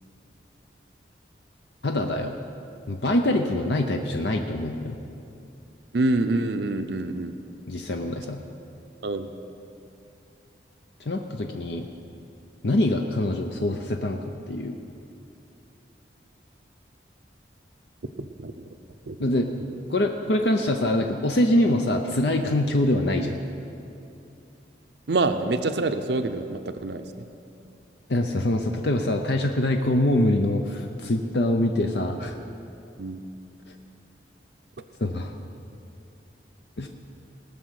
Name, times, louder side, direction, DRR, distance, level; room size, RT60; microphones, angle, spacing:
voice 1, 1.8-2.3 2.9-5.0 7.7-8.4 11.1-11.9 12.6-14.2 14.5-14.8 19.2-19.5 19.9-23.3 28.1-32.4 35.0-35.3 36.8-36.9, left 1 dB, 70° left, 4 dB, 0.7 m, -24 dB
voice 2, 5.9-7.4 9.0-9.3 18.2-18.7 19.1-19.2 25.1-27.3 33.0-33.2, right 2 dB, 70° right, 8 dB, 0.6 m, -26 dB
19.5 x 6.9 x 6.5 m, 2.7 s
head